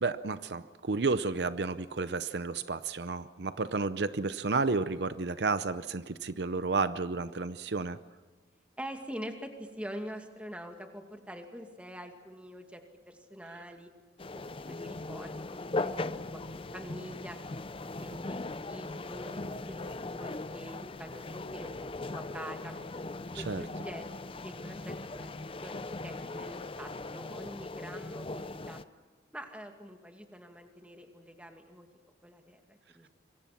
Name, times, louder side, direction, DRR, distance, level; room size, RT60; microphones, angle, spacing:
voice 1, 0.0-8.0 23.3-23.6, right 4 dB, 65° right, 13 dB, 0.7 m, -31 dB
voice 2, 8.8-13.9 14.3-17.4 17.7-19.4 19.7-21.7 22.0-22.8 23.4-28.8 29.3-31.9 32.2-33.1, equal, 5° right, 4 dB, 2.3 m, -45 dB
sound 1, 14.2-28.8, left 2 dB, 30° left, 0.6 m, -39 dB
26.5 x 23.0 x 6.0 m, 1.4 s
head